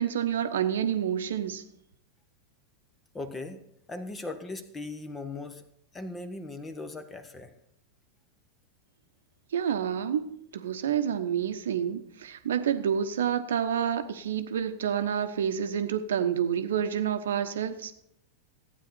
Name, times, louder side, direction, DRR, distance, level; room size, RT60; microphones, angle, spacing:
voice 1, 0.0-1.6 9.5-10.3 10.5-17.9, right 8 dB, 65° right, 1.0 m, -28 dB
voice 2, 3.1-3.6 3.9-5.6 5.9-7.5, left 2 dB, 15° left, 1.1 m, -38 dB
15.5 x 9.2 x 4.4 m
figure-of-eight pair, 90°, 0 cm